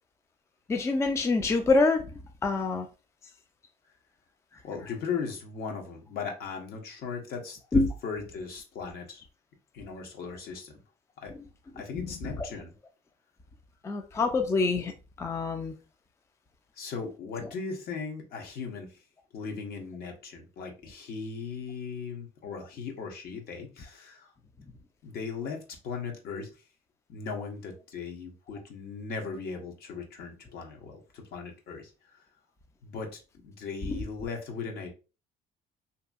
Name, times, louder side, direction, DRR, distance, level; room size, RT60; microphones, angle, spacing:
voice 1, 0.7-2.1 2.4-2.9 7.7-7.9 12.4-12.5 13.8-14.9 15.2-15.7, left 3 dB, 15° left, 0.4 m, -25 dB
voice 2, 4.6-9.2 9.7-10.8 11.2-11.3 11.7-12.7 16.8-19.0 19.3-24.3 25.0-26.5 27.1-32.2 32.8-34.9, left 5 dB, 65° left, 0.9 m, -38 dB
2.7 x 2.6 x 2.3 m
cardioid pair, 110°, 17 cm